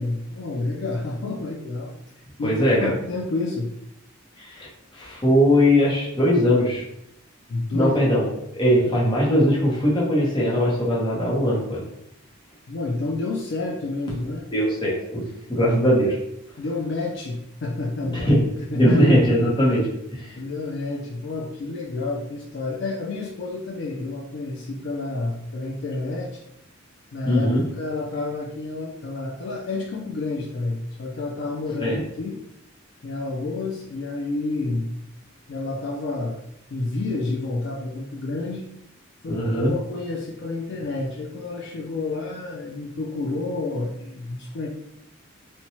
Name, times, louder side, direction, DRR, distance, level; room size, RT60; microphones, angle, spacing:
voice 1, 0.0-2.0 2.4-3.7 7.5-8.1 12.7-14.5 16.6-18.3 18.7-19.2 20.4-26.4 27.1-27.5 27.7-32.4 33.0-34.9 35.5-36.4 36.7-38.7 39.2-44.7, left 2 dB, 55° left, -1 dB, 0.3 m, -29 dB
voice 2, 2.4-2.9 4.4-6.8 7.7-8.3 8.5-11.9 14.5-15.2 15.5-16.2 18.1-18.5 18.7-20.3 27.3-27.6 31.8-32.0 39.3-39.7, equal, 20° left, -5 dB, 0.7 m, -20 dB
2.8 x 2.1 x 2.8 m, 0.77 s
head